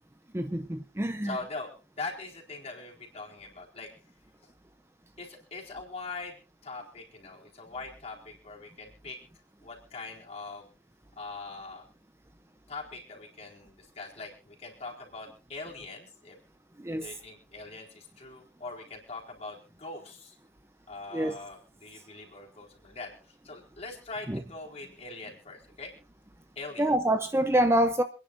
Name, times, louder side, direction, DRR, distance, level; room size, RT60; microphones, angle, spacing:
voice 1, 0.3-1.4 16.8-17.1 21.1-21.4 24.3-24.4 26.8-28.0, right 1 dB, 15° right, 0.6 m, -26 dB
voice 2, 1.2-3.9 4.4-4.5 5.2-9.2 9.6-10.7 11.2-11.9 12.7-16.4 16.9-20.4 20.9-25.9 26.6-26.9, left 3 dB, 35° left, 4.3 m, -42 dB
27.0 x 10.0 x 2.6 m
head